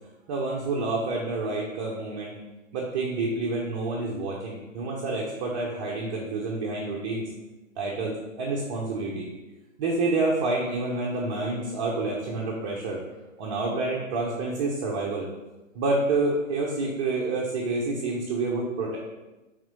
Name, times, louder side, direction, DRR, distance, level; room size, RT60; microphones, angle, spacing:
voice 1, 0.3-2.4 2.7-7.3 7.8-9.3 9.8-13.0 13.4-15.3 15.7-19.0, right 3 dB, 25° right, -3 dB, 0.8 m, -28 dB
6.2 x 3.6 x 5.2 m, 1.1 s
figure-of-eight pair, 125°, 40 cm